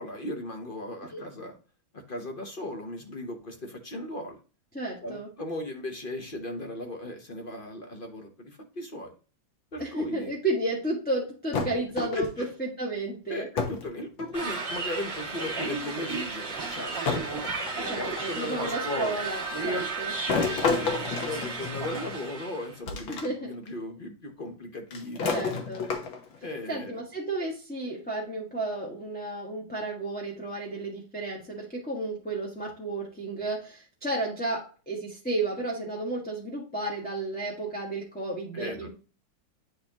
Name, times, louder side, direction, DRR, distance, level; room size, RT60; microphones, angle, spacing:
voice 1, 0.0-1.6 1.9-4.4 5.0-9.1 9.7-10.3 12.0-12.5 13.3-17.0 17.7-19.2 19.6-19.9 20.6-25.6 26.4-27.0 38.5-38.9, left 1 dB, 45° left, 4 dB, 0.7 m, -37 dB
voice 2, 4.7-5.3 9.8-13.5 17.9-20.1 23.1-23.5 25.3-25.8 26.7-38.9, right 2 dB, 5° left, -4 dB, 1.2 m, -32 dB
sound 1, 11.5-12.5 13.6-13.9 14.2-14.8 15.8-15.9 17.1-18.4 20.3-22.1 22.9-23.3 23.7-23.8 24.9-26.4, left 5 dB, 85° left, 2.0 m, -30 dB
sound 2, 14.3-22.7, right 3 dB, 35° right, 2.1 m, -33 dB
9.0 x 4.2 x 2.9 m, 0.36 s
omnidirectional pair, 2.1 m